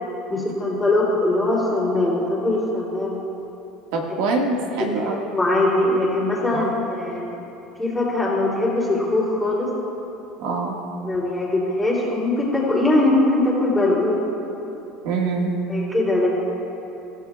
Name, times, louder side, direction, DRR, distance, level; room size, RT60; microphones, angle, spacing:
voice 1, 0.3-3.2 5.0-7.4 7.8-9.7 11.0-14.2 15.7-16.3, left 2 dB, 5° left, -5 dB, 3.0 m, -21 dB
voice 2, 3.9-5.2 6.5-6.7 10.4-10.8 15.0-15.5, right 3 dB, 70° right, 0 dB, 1.8 m, -24 dB
25.5 x 14.5 x 2.4 m, 3.0 s
cardioid pair, 165°, 0 cm